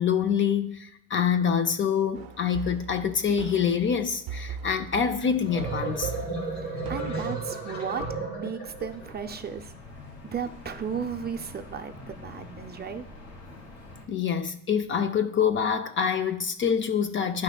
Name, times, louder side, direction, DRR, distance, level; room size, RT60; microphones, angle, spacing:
voice 1, 0.0-6.1 14.1-17.4, left 7 dB, 35° left, 0.4 m, -26 dB
sound 1, 2.1-7.2, right 6 dB, 85° right, 0.5 m, -40 dB
sound 2, 5.2-9.1, right 3 dB, 85° left, 2.8 m, -33 dB
voice 2, 6.9-9.7 10.3-13.1, right 6 dB, 30° right, 0.4 m, -35 dB
sound 3, 8.6-14.0, left 2 dB, 55° left, 2.4 m, -45 dB
10.5 x 5.6 x 2.2 m
cardioid pair, 110°, 36 cm